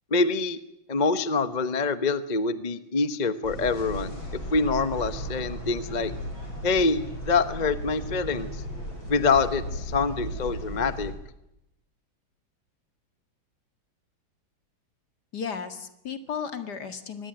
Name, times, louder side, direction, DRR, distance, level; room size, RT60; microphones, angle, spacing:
voice 1, 0.1-0.6 0.9-4.2 4.5-6.1 6.6-8.5 9.1-11.1, left 4 dB, 30° left, 12 dB, 0.9 m, -25 dB
sound 1, 3.4-11.1, equal, 85° left, 6.9 m, -36 dB
voice 2, 15.3-17.3, left 6 dB, 55° left, 9 dB, 2.5 m, -34 dB
23.0 x 19.5 x 9.1 m, 0.82 s
omnidirectional pair, 2.1 m